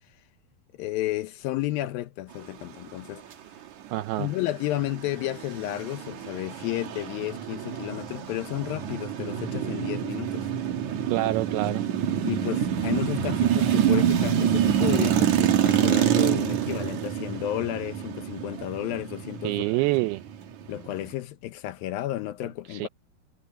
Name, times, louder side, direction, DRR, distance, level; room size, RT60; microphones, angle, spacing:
voice 1, 0.8-3.2 4.2-10.5 12.2-19.8 20.7-22.9, left 15 dB, 75° left, 2.4 m, -32 dB
voice 2, 3.9-4.3 11.1-11.9 19.4-20.2 22.7-22.9, right 19 dB, 80° right, 2.5 m, -26 dB
sound 1, 4.4-21.1, right 9 dB, 60° right, 2.4 m, -26 dB
omnidirectional pair, 4.6 m